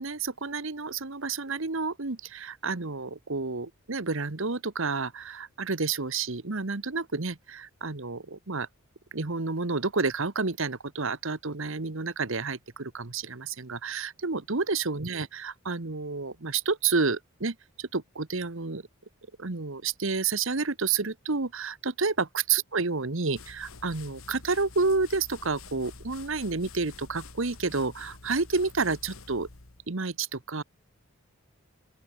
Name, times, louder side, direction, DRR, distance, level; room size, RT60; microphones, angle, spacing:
voice 1, 0.0-8.7 9.1-18.8 19.4-29.5 29.9-30.6, right 4 dB, 60° right, 1.2 m, -30 dB
sound 1, 23.4-29.9, left 3 dB, 70° left, 2.4 m, -48 dB
open air
head